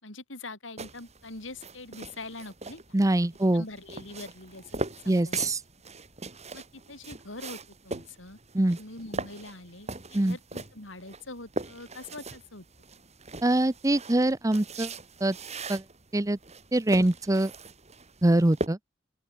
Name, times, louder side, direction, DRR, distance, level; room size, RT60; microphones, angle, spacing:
voice 1, 0.0-2.8 3.5-5.5 6.5-7.6 7.8-8.4 8.8-12.7, left 2 dB, 85° left, 7.3 m, -43 dB
sound 1, 0.8-18.7, right 2 dB, 35° right, 6.8 m, -40 dB
voice 2, 2.9-3.6 5.1-5.6 8.5-8.8 10.1-10.4 13.4-14.9 15.2-15.4 15.7-15.8 16.1-16.4 16.7-17.5 18.2-18.8, right 1 dB, 15° right, 0.7 m, -23 dB
open air
head